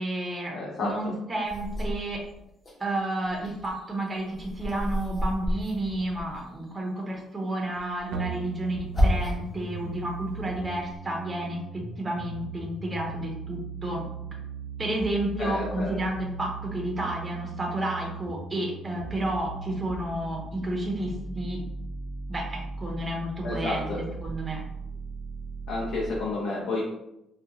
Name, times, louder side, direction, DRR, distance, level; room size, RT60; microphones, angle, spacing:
voice 1, 0.0-0.5 0.8-2.2 2.8-14.0 14.8-21.6 22.3-24.6, right 1 dB, 15° right, -1 dB, 0.6 m, -31 dB
voice 2, 0.5-1.1 15.4-16.0 23.4-24.0 25.7-26.8, left 3 dB, 80° left, -5 dB, 0.7 m, -31 dB
sound 1, 1.5-2.8 3.2-6.7 7.7-9.6 10.1-11.0, equal, 25° left, 0.8 m, -31 dB
sound 2, 8.1-26.1, right 4 dB, 85° right, 0.5 m, -38 dB
3.9 x 2.2 x 2.7 m, 0.85 s
cardioid pair, 160°, 0 cm